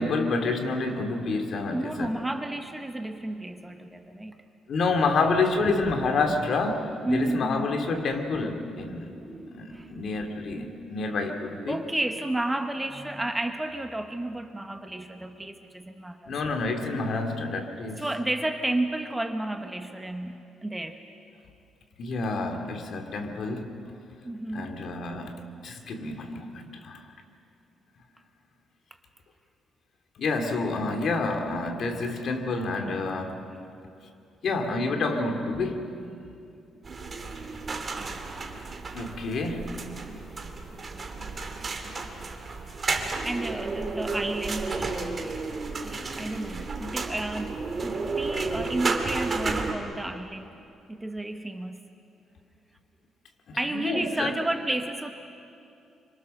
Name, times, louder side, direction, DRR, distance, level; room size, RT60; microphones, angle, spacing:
voice 1, 0.0-2.2 4.7-9.2 9.5-11.8 16.3-18.1 22.0-23.8 24.5-27.1 30.2-33.4 34.4-36.0 38.9-39.8 53.5-54.4, left 3 dB, 50° left, 4 dB, 2.5 m, -28 dB
voice 2, 1.7-4.4 7.0-7.7 8.9-9.9 11.7-16.3 18.0-21.0 24.2-24.7 37.9-38.2 42.8-45.4 45.8-47.6 47.8-50.6 50.9-51.8 53.6-55.1, right 1 dB, 10° right, 6 dB, 1.0 m, -32 dB
sound 1, 36.8-49.7, right 3 dB, 30° right, 2.2 m, -32 dB
28.5 x 25.5 x 6.5 m, 2.6 s
cardioid pair, 150°, 0 cm